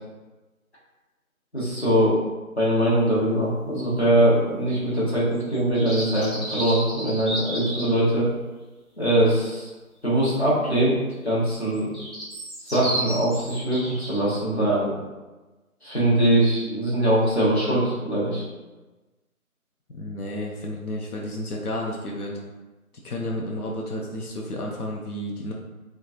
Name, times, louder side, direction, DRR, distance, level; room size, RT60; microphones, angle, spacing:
voice 1, 1.5-2.2 2.6-8.3 9.0-9.7 10.0-11.9 12.6-14.9 15.8-18.4, right 1 dB, 45° left, -7 dB, 0.9 m, -22 dB
sound 1, 5.5-8.0 11.5-14.2, right 1 dB, ahead, 0.6 m, -32 dB
voice 2, 19.9-22.4 23.0-25.5, left 1 dB, 90° left, -2 dB, 0.6 m, -31 dB
2.9 x 2.2 x 2.5 m, 1.2 s
figure-of-eight pair, 180°, 43 cm